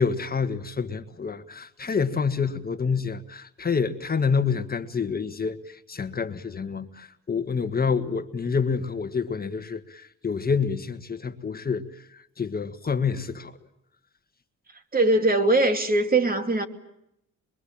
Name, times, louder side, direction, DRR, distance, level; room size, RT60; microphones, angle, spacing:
voice 1, 0.0-13.5, left 5 dB, 30° left, 1.6 m, -28 dB
voice 2, 14.9-16.7, right 2 dB, 30° right, 2.8 m, -21 dB
26.0 x 23.0 x 8.7 m
cardioid pair, 90°, 30 cm